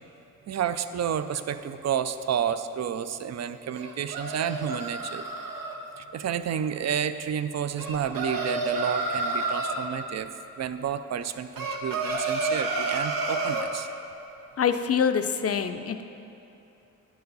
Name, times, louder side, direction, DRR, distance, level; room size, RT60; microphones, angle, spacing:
voice 1, 0.5-5.3 6.0-10.3 10.6-13.9, right 8 dB, 55° right, 11 dB, 0.4 m, -30 dB
sound 1, 3.7-5.7 7.8-9.8 11.6-13.7, right 2 dB, 85° right, 0.9 m, -30 dB
voice 2, 14.6-16.0, left 7 dB, 45° left, 8 dB, 0.5 m, -25 dB
10.0 x 6.9 x 4.1 m, 2.8 s
cardioid pair, 80°, 33 cm